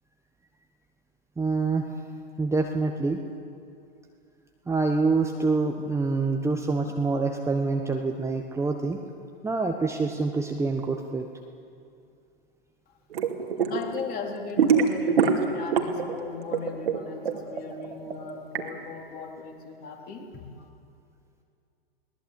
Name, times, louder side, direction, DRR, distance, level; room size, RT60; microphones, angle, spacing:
voice 1, 1.4-1.8 2.4-3.2 4.7-9.0 9.4-11.3, right 3 dB, 10° right, 3 dB, 1.3 m, -26 dB
sound 1, 13.1-13.8 14.1-16.1 16.4-18.6, right 6 dB, 70° right, 2.7 m, -23 dB
voice 2, 13.7-20.4, left 4 dB, 30° left, 1 dB, 3.9 m, -37 dB
22.0 x 19.0 x 8.4 m, 2.5 s
figure-of-eight pair, 105°, 31 cm